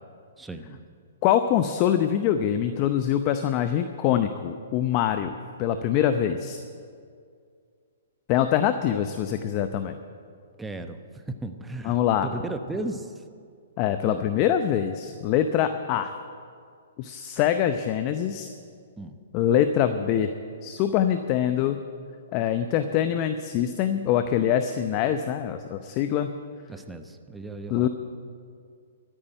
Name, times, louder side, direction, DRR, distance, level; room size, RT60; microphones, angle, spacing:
voice 1, 0.4-0.8 10.6-13.2 14.0-14.3 19.0-19.2 26.7-27.9, right 2 dB, 5° right, 7 dB, 0.9 m, -36 dB
voice 2, 1.2-6.6 8.3-10.0 11.8-12.3 13.8-16.1 17.0-18.5 19.3-20.3 20.6-21.8 22.3-26.4 27.7-27.9, left 10 dB, 35° left, 9 dB, 0.7 m, -24 dB
12.5 x 10.0 x 9.9 m, 2.2 s
hypercardioid pair, 130°, 0 cm